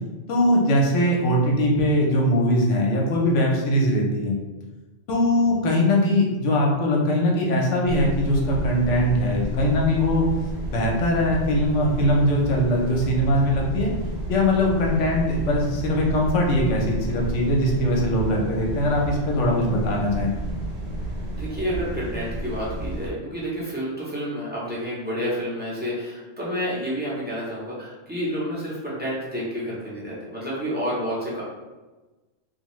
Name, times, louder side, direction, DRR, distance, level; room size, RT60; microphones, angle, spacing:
voice 1, 0.3-4.4 5.1-10.3 10.7-13.9 14.3-20.3, left 1 dB, 75° left, -1 dB, 1.0 m, -21 dB
sound 1, 7.8-23.1, right 1 dB, 60° right, 0.8 m, -31 dB
voice 2, 21.3-31.4, equal, 10° right, -7 dB, 0.5 m, -29 dB
2.7 x 2.3 x 3.0 m, 1.2 s
omnidirectional pair, 1.3 m